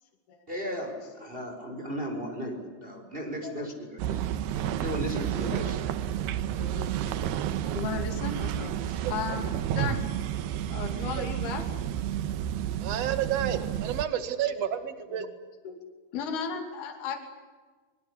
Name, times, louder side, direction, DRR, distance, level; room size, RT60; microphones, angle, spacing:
voice 1, 0.5-4.2 4.7-5.8 6.2-6.3 9.4-9.5, equal, 15° right, 3 dB, 5.5 m, -36 dB
sound 1, 4.0-14.1, right 10 dB, 80° right, 3.1 m, -31 dB
voice 2, 6.6-7.3 7.7-9.4 9.8-10.1 10.7-11.7 15.6-15.8 16.1-17.2, left 6 dB, 70° left, 4 dB, 4.7 m, -35 dB
voice 3, 12.8-15.3, right 10 dB, 50° right, 10 dB, 2.5 m, -30 dB
24.5 x 24.0 x 8.4 m, 1.3 s
omnidirectional pair, 4.7 m